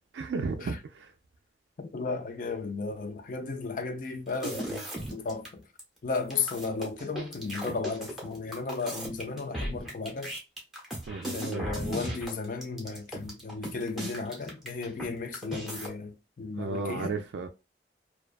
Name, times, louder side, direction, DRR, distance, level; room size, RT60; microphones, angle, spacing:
voice 1, 0.1-1.1 11.1-11.7 16.6-17.5, right 4 dB, 85° right, 0.3 m, -34 dB
voice 2, 1.8-5.6 6.0-10.3 11.3-17.2, left 4 dB, 50° left, 0.4 m, -34 dB
sound 1, 4.3-5.5 5.8-5.9 6.2-15.1 15.3-15.9, right 1 dB, ahead, 0.8 m, -37 dB
2.4 x 2.3 x 2.4 m
head